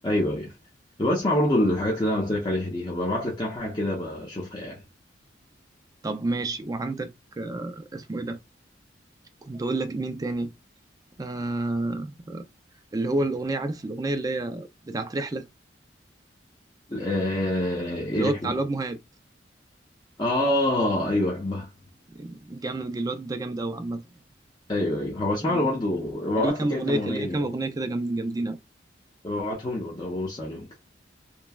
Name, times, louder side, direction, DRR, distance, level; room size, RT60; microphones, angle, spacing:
voice 1, 0.0-0.5 1.0-4.8 16.9-18.6 20.2-21.7 24.7-27.4 29.2-30.7, left 1 dB, 25° left, 0.7 m, -26 dB
voice 2, 6.0-7.1 7.4-8.4 9.4-10.5 11.2-12.5 12.9-15.5 18.2-19.0 22.1-24.0 25.5-25.7 26.4-28.6, right 2 dB, 20° right, 0.4 m, -29 dB
3.0 x 2.1 x 2.3 m
head